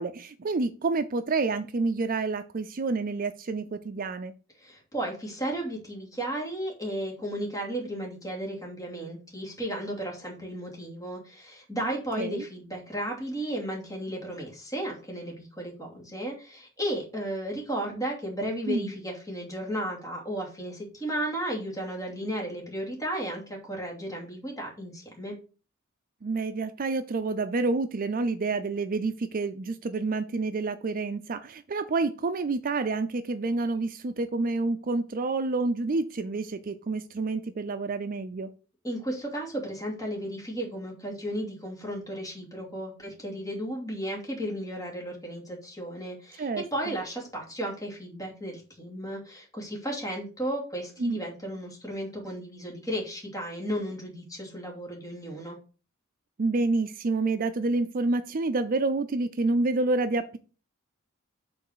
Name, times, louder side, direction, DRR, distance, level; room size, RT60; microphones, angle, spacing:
voice 1, 0.0-4.3 12.2-12.4 18.7-18.9 26.2-38.5 46.4-47.0 51.0-51.2 56.4-60.4, right 3 dB, 45° right, 10 dB, 0.4 m, -28 dB
voice 2, 4.6-25.3 38.8-55.6, right 1 dB, 15° left, -2 dB, 2.8 m, -34 dB
7.0 x 4.0 x 6.6 m, 0.36 s
head